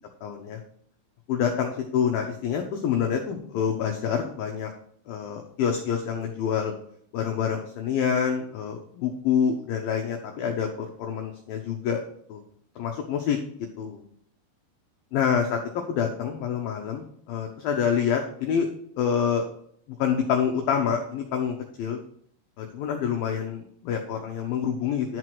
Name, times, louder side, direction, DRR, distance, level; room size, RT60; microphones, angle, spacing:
voice 1, 0.2-0.6 1.3-4.7 5.1-6.7 7.1-12.0 12.3-12.4 12.8-13.4 13.8-14.0 15.1-15.6 15.9-18.7 19.0-19.4 20.0-22.0 22.6-25.2, left 7 dB, 80° left, 3 dB, 2.1 m, -27 dB
11.0 x 4.7 x 6.0 m, 0.65 s
omnidirectional pair, 5.4 m